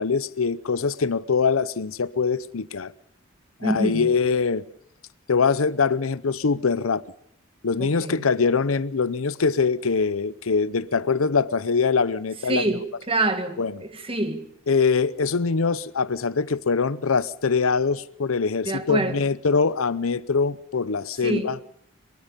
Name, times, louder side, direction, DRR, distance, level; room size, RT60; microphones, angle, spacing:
voice 1, 0.0-2.9 3.6-4.6 5.3-7.0 7.6-12.6 13.6-13.7 14.7-21.6, left 5 dB, 90° left, 0.7 m, -23 dB
voice 2, 3.6-4.1 7.8-8.3 12.4-14.5 18.7-19.3 21.2-21.5, right 2 dB, 25° right, 1.8 m, -26 dB
23.0 x 22.0 x 5.2 m
head